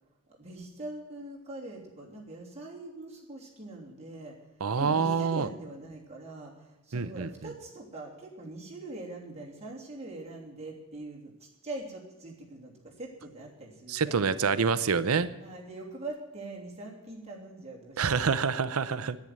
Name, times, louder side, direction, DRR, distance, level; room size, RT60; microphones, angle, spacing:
voice 1, 0.3-4.4 4.7-14.4 14.6-14.8 15.4-18.4, right 2 dB, 30° right, -3 dB, 3.2 m, -43 dB
voice 2, 4.6-5.5 6.9-7.3 13.9-15.3 18.0-19.2, right 5 dB, 90° right, 14 dB, 0.7 m, -27 dB
10.5 x 9.3 x 9.4 m, 1.1 s
head